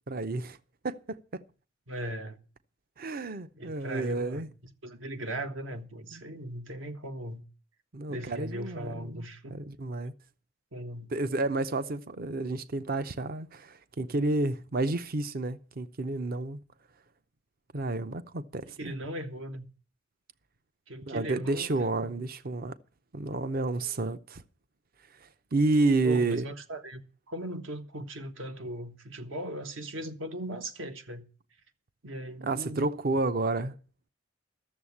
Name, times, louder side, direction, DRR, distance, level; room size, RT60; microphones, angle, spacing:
voice 1, 0.1-0.6 0.8-1.2 3.0-4.5 6.1-6.2 7.9-10.1 11.1-16.6 17.7-18.9 21.1-22.8 23.1-24.4 25.5-26.4 32.4-33.7, right 2 dB, 45° right, 0.6 m, -30 dB
voice 2, 1.9-2.4 3.5-4.5 4.8-7.4 8.1-9.6 10.7-11.1 18.8-19.7 20.9-21.7 22.0-22.1 26.0-27.0 27.3-31.3 32.0-32.9, right 1 dB, 75° right, 1.5 m, -38 dB
13.0 x 7.2 x 8.5 m
head